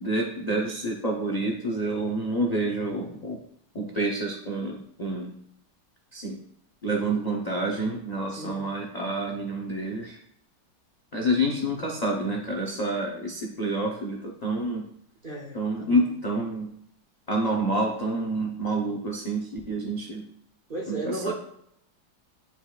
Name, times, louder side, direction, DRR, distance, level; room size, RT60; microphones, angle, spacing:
voice 1, 0.0-3.4 3.7-5.3 6.1-6.4 6.8-10.2 11.1-14.8 15.5-16.7 17.3-20.2 20.9-21.3, right 1 dB, 55° left, -1 dB, 0.4 m, -28 dB
voice 2, 8.3-8.7 15.2-16.1 20.7-21.3, right 2 dB, 40° right, -3 dB, 0.8 m, -35 dB
9.8 x 4.5 x 2.3 m, 0.72 s
omnidirectional pair, 2.0 m